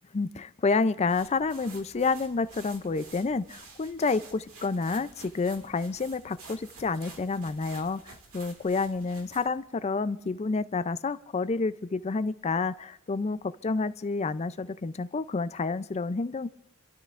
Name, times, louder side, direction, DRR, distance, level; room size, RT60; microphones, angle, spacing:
voice 1, 0.1-16.5, left 4 dB, 30° left, 0.4 m, -29 dB
sound 1, 1.1-9.6, right 4 dB, 75° right, 1.9 m, -50 dB
29.5 x 12.5 x 2.5 m
head